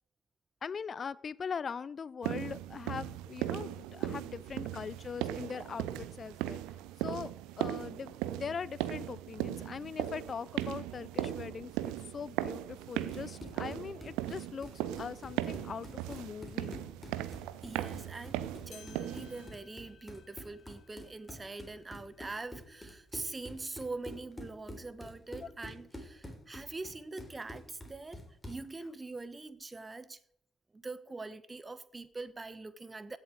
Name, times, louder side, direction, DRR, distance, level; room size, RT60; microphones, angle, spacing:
voice 1, 0.6-6.6 7.0-7.3 7.6-16.8 25.4-25.5, left 6 dB, 40° left, 0.5 m, -41 dB
sound 1, 2.2-19.5, right 13 dB, 70° right, 0.6 m, -38 dB
Run, 12.9-28.7, equal, 15° left, 3.7 m, -48 dB
voice 2, 17.6-28.2 28.5-30.2 30.7-33.2, right 3 dB, 25° right, 1.1 m, -43 dB
sound 2, 18.7-23.4 23.9-24.0 24.8-24.9 25.8-25.9, left 10 dB, 60° left, 1.4 m, -61 dB
16.0 x 7.7 x 4.7 m
figure-of-eight pair, 45°, 0 cm